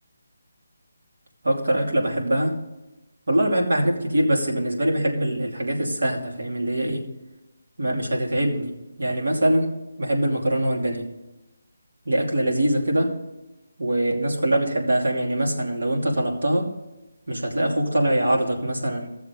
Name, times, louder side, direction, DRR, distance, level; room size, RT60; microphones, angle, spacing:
voice 1, 1.4-2.6 3.3-7.1 7.8-9.7 10.0-11.1 12.1-13.2 13.8-16.7 17.3-19.1, right 1 dB, 75° right, 0 dB, 2.8 m, -23 dB
14.5 x 7.1 x 5.3 m, 1.0 s
hypercardioid pair, 180°, 0 cm